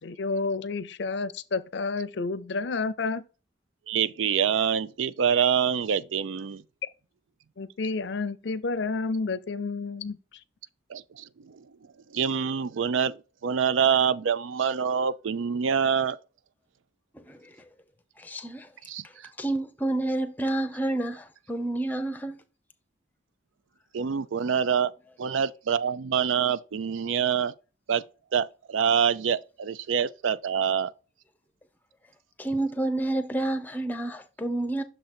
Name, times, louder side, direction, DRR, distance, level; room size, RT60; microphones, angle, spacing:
voice 1, 0.0-3.2 7.6-10.2, left 3 dB, 65° left, 0.5 m, -30 dB
voice 2, 3.9-6.6 10.9-11.6 12.1-13.2 13.4-16.2 18.9-19.0 23.9-24.9 25.2-27.5 27.9-28.0 28.3-30.9, right 7 dB, 80° right, 0.4 m, -26 dB
voice 3, 17.1-17.7 18.2-18.7 19.0-19.1 19.4-22.4 32.4-34.8, right 2 dB, 10° left, 0.6 m, -29 dB
6.6 x 3.8 x 4.3 m
head